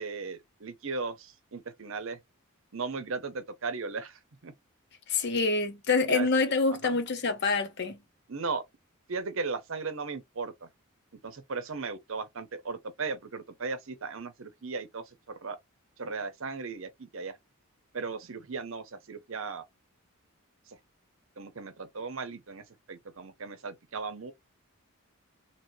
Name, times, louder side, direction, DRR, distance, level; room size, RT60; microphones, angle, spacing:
voice 1, 0.0-2.2 2.7-4.5 6.1-6.3 6.8-7.0 8.3-8.6 9.1-10.7 11.2-15.6 16.0-17.4 17.9-19.6 20.7-20.8 21.4-24.3, right 4 dB, 60° right, 0.7 m, -37 dB
voice 2, 5.1-8.0, left 4 dB, 50° left, 0.8 m, -26 dB
3.1 x 2.9 x 2.7 m
head